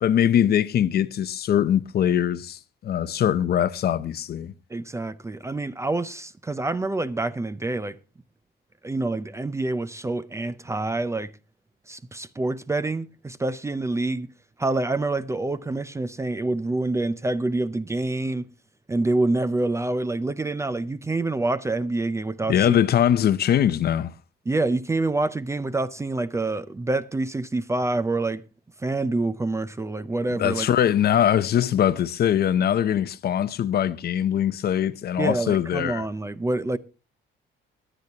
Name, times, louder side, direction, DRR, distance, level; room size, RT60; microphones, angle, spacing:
voice 1, 0.0-4.5 22.5-24.1 30.4-36.0, left 10 dB, 50° left, 0.6 m, -22 dB
voice 2, 4.7-8.0 8.8-11.3 11.9-14.3 14.6-18.5 18.9-22.8 24.5-28.4 28.8-30.7 35.2-36.8, right 2 dB, 15° right, 0.5 m, -26 dB
21.0 x 8.0 x 2.9 m
cardioid pair, 145°, 20 cm